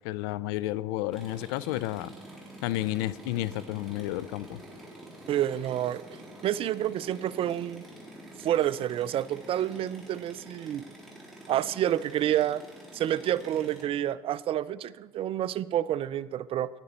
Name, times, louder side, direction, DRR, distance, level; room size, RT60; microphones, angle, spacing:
voice 1, 0.0-2.1 2.6-4.6, left 15 dB, 75° left, 19 dB, 0.4 m, -31 dB
sound 1, 1.1-13.8, right 1 dB, ahead, 3.9 m, -47 dB
voice 2, 5.3-6.0 6.4-7.8 8.4-10.9 11.5-12.6 12.9-16.7, right 11 dB, 45° right, 18 dB, 0.4 m, -29 dB
11.5 x 9.8 x 4.2 m, 1.4 s
hypercardioid pair, 70°, 13 cm